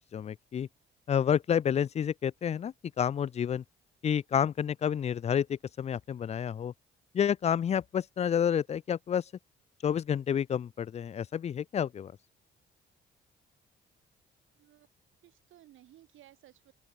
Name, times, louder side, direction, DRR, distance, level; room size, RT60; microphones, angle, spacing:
voice 1, 0.1-0.7 1.1-3.6 4.0-6.7 7.1-9.2 9.8-12.1, left 8 dB, 35° left, 0.4 m, -29 dB
voice 2, 14.5-14.9 15.2-16.7, right 13 dB, 80° right, 2.8 m, -58 dB
open air
cardioid pair, 90°, 20 cm